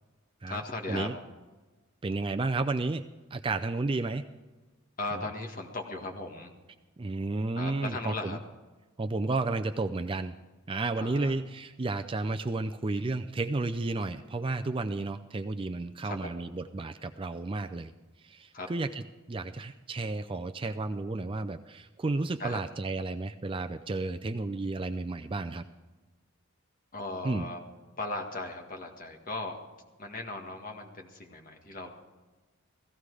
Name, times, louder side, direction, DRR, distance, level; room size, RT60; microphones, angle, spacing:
voice 1, 0.5-1.1 5.0-6.5 7.5-8.4 10.9-11.4 16.0-16.4 18.5-18.7 22.4-22.6 26.9-27.6 28.0-29.6 30.0-31.9, left 2 dB, 40° left, 2 dB, 1.8 m, -37 dB
voice 2, 2.0-3.0 3.3-4.2 7.0-8.4 9.0-10.4 10.7-17.9 18.2-25.6 27.2-27.5, right 3 dB, 25° right, 8 dB, 0.4 m, -32 dB
16.5 x 14.5 x 4.9 m, 1.2 s
head